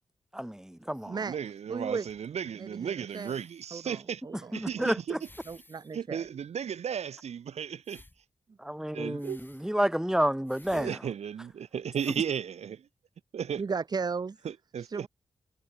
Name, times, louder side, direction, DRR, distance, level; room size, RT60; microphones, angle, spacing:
voice 1, 0.3-1.2 4.5-5.2 8.6-11.0, equal, 5° right, 2.0 m, -30 dB
sound 1, 0.9-1.1 2.1-2.5 3.0-3.7 4.6-4.7 5.2-6.0 6.2-6.3 7.8-8.2 9.2-9.7 10.5-10.9 11.5-11.6 11.9-12.3 13.2-13.3, left 1 dB, 20° left, 6.2 m, -56 dB
voice 2, 1.1-4.2 4.5-5.2 5.9-8.0 8.9-9.4 10.7-12.8 13.3-13.6 14.4-15.1, right 8 dB, 75° right, 0.8 m, -35 dB
voice 3, 1.7-2.1 2.6-3.3 3.7-4.9 5.5-6.3 13.6-14.5 14.8-15.1, right 5 dB, 40° right, 0.6 m, -36 dB
cardioid pair, 70°, 11 cm